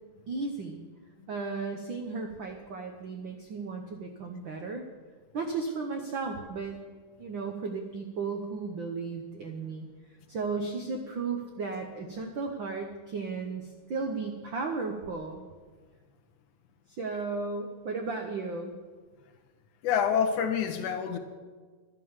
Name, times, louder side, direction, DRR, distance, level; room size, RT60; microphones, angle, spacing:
voice 1, 0.3-0.8 1.3-4.8 5.3-6.8 7.2-9.9 10.3-15.4 17.0-18.7, right 4 dB, 80° right, 4 dB, 1.0 m, -35 dB
voice 2, 19.8-21.2, left 7 dB, 80° left, 5 dB, 2.6 m, -27 dB
12.5 x 10.0 x 7.3 m, 1.5 s
omnidirectional pair, 3.6 m